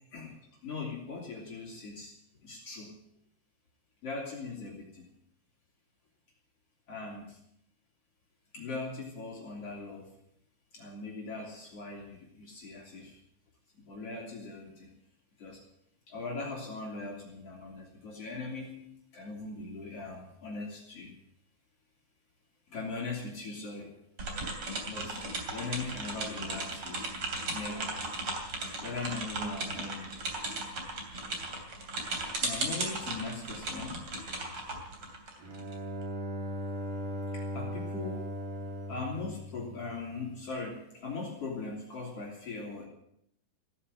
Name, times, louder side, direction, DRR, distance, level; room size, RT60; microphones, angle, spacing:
voice 1, 0.6-2.1 2.4-3.0 4.0-5.1 6.9-7.4 8.5-10.1 10.7-13.2 13.8-14.9 15.4-15.6 16.1-21.1 22.7-23.9 24.8-25.2 25.5-27.1 27.5-28.0 28.8-30.0 32.4-34.1 37.3-38.3 38.9-42.9, left 3 dB, 45° left, -2 dB, 3.9 m, -40 dB
sound 1, 24.2-35.7, right 2 dB, 40° right, 3.6 m, -36 dB
Bowed string instrument, 35.4-40.3, equal, 85° right, 5.5 m, -38 dB
16.0 x 10.0 x 8.9 m, 0.71 s
omnidirectional pair, 4.2 m